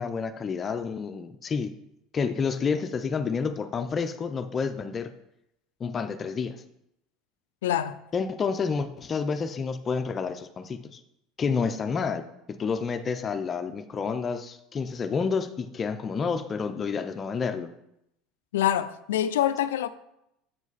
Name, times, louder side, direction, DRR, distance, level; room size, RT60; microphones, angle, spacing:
voice 1, 0.0-1.7 2.1-5.1 5.8-6.6 8.1-11.0 11.4-12.2 12.6-17.7, left 5 dB, 35° left, 0.5 m, -29 dB
voice 2, 7.6-8.0 18.5-19.9, left 11 dB, 90° left, 0.4 m, -25 dB
7.5 x 4.9 x 4.1 m
supercardioid pair, 90°, 0 cm